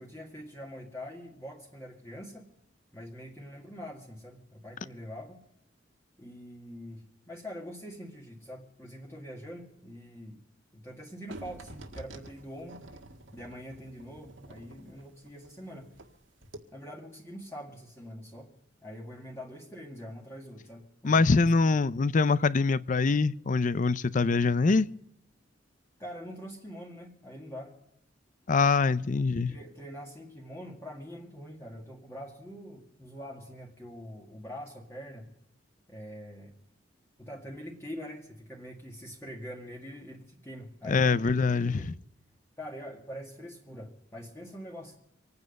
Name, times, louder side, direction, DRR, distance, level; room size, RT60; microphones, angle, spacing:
voice 1, 0.0-2.5 2.9-5.4 6.2-10.4 10.7-13.1 13.3-15.9 16.7-18.5 18.8-22.0 26.0-27.7 28.9-29.0 29.3-35.3 35.9-36.5 37.2-41.9 42.6-45.0, equal, 15° left, 1.9 m, -44 dB
sound 1, 11.3-16.1 16.4-16.6, right 1 dB, 90° right, 1.7 m, -48 dB
voice 2, 21.0-24.9 28.5-29.5 40.9-41.9, left 4 dB, 45° left, 0.5 m, -24 dB
25.5 x 9.6 x 5.3 m
head